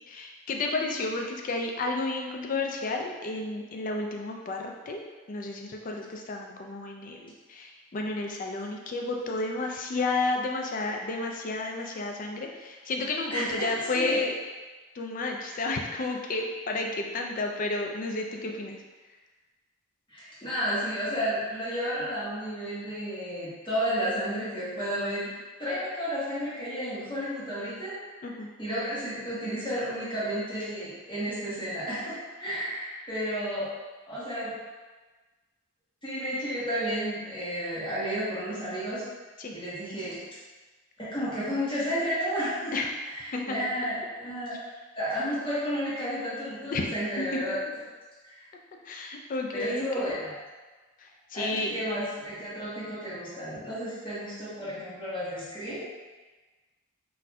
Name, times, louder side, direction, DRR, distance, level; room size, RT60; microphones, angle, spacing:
voice 1, 0.1-5.0 5.3-14.3 15.0-18.8 28.2-28.5 39.4-39.5 42.7-42.9 43.3-43.5 46.7-46.9 47.3-47.5 48.9-50.1 51.3-51.8, left 2 dB, 40° left, 1 dB, 0.3 m, -31 dB
voice 2, 13.3-14.2 20.1-25.3 25.6-28.3 28.6-33.7 34.1-34.6 36.0-39.0 39.5-40.2 41.0-42.8 43.0-44.6 44.9-47.6 48.3-48.4 49.5-50.4 51.3-55.8, equal, 25° left, -10 dB, 1.0 m, -32 dB
4.1 x 2.5 x 2.2 m, 1.3 s
head